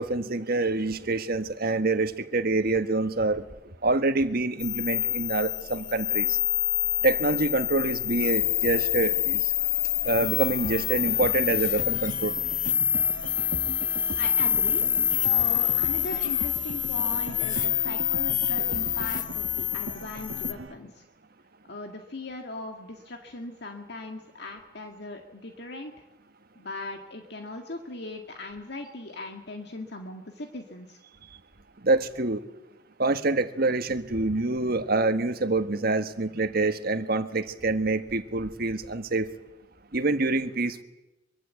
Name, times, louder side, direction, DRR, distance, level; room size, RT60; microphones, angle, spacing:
voice 1, 0.0-3.5 3.8-6.4 7.0-9.5 10.0-12.4 31.8-32.4 33.0-39.3 39.9-40.8, right 2 dB, 55° right, 9 dB, 1.6 m, -26 dB
sound 1, 4.6-20.5, left 11 dB, 45° left, 1.6 m, -27 dB
sound 2, 10.1-20.8, right 2 dB, 75° right, 1.3 m, -40 dB
voice 2, 14.2-14.8 15.3-21.0 21.7-25.9 26.6-31.0, left 2 dB, 60° left, 4 dB, 2.1 m, -39 dB
24.0 x 23.5 x 8.4 m, 0.97 s
head